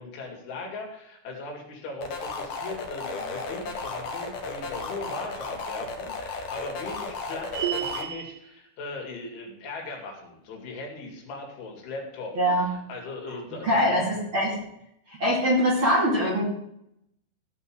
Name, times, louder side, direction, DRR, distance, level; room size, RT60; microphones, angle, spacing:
voice 1, 0.0-13.9, left 3 dB, 80° left, 0 dB, 5.1 m, -39 dB
sound 1, 2.0-8.0, left 4 dB, 60° left, 1.9 m, -34 dB
sound 2, 7.5-8.4, right 11 dB, 75° right, 1.9 m, -30 dB
voice 2, 12.3-12.7 13.6-14.6 15.1-16.4, equal, 35° right, -4 dB, 2.6 m, -23 dB
15.0 x 5.5 x 7.7 m, 0.78 s
omnidirectional pair, 5.4 m